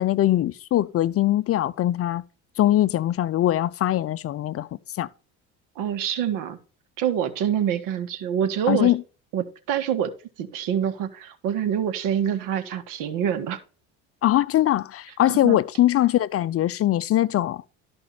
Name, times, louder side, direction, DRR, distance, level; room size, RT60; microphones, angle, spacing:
voice 1, 0.0-2.2 2.6-4.7 5.0-5.1 8.7-9.0 14.2-17.6, left 13 dB, 45° left, 0.6 m, -21 dB
voice 2, 5.7-6.6 7.0-8.9 9.3-10.1 10.4-13.6 15.3-15.6, right 9 dB, 70° right, 1.7 m, -26 dB
12.5 x 5.3 x 4.1 m
supercardioid pair, 90°, 33 cm